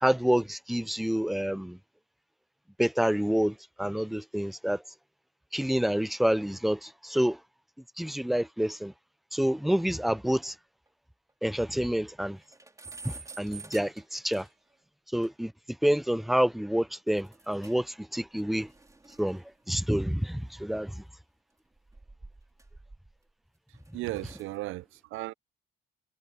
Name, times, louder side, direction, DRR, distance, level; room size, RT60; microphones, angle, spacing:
voice 1, 0.0-1.8 2.8-4.8 5.5-7.4 8.0-8.9 9.3-10.6 11.4-12.4 13.0-14.5 15.1-15.5 15.8-18.7 19.2-21.0, equal, ahead, 0.4 m, -28 dB
sound 1, 10.4-10.5 10.9-11.0 11.3-11.4 11.7-11.8 12.2-14.7 15.2-15.3 17.2-17.9 18.2-20.9 21.7-23.3 23.7-24.6, right 4 dB, 15° right, 4.4 m, -50 dB
voice 2, 23.7-25.3, right 18 dB, 85° right, 0.4 m, -36 dB
cardioid pair, 90°, 20 cm